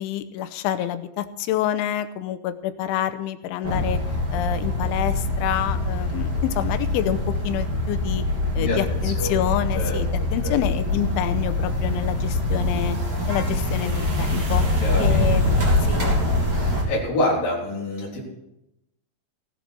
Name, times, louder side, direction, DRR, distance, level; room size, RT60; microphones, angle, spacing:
voice 1, 0.0-4.0 4.3-8.2 8.5-13.0 13.3-14.6 15.0-15.5 15.8-16.1, left 12 dB, 85° left, 11 dB, 3.1 m, -27 dB
sound 1, 3.6-16.8, left 1 dB, 25° right, 2.3 m, -24 dB
voice 2, 8.6-9.4 9.7-10.0 10.4-10.6 14.8-15.3 16.5-18.2, left 1 dB, 50° left, -4 dB, 5.2 m, -27 dB
16.5 x 11.5 x 4.4 m, 0.86 s
omnidirectional pair, 5.4 m